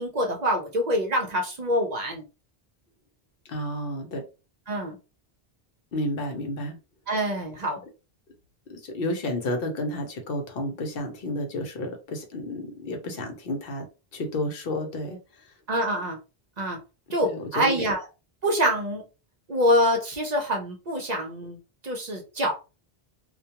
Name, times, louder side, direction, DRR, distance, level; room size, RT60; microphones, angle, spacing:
voice 1, 0.0-2.2 4.7-5.0 7.1-7.8 15.7-16.2 16.6-16.8 17.1-18.1 18.4-19.1 19.5-21.6 21.8-22.5, equal, 50° right, 2 dB, 0.6 m, -25 dB
voice 2, 3.5-4.3 5.9-6.8 8.7-13.9 14.1-15.2 17.2-17.9, left 1 dB, 65° left, 4 dB, 0.9 m, -31 dB
2.3 x 2.2 x 2.8 m, 0.30 s
omnidirectional pair, 1.0 m